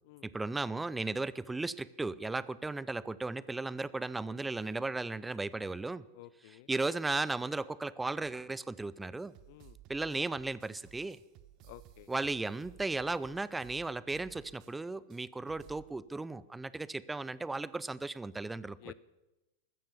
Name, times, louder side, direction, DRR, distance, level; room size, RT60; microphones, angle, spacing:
voice 1, 0.2-6.0 6.7-9.3 9.9-11.2 12.1-18.9, right 3 dB, 10° right, 19 dB, 0.6 m, -36 dB
voice 2, 6.1-6.7 9.5-9.8 11.6-12.1 18.8-18.9, left 17 dB, 50° left, 18 dB, 0.5 m, -52 dB
sound 1, 9.2-14.8 15.1-15.2 15.5-15.9, right 12 dB, 40° right, 0.8 m, -57 dB
14.5 x 13.5 x 7.0 m, 1.0 s
figure-of-eight pair, 90°, 0 cm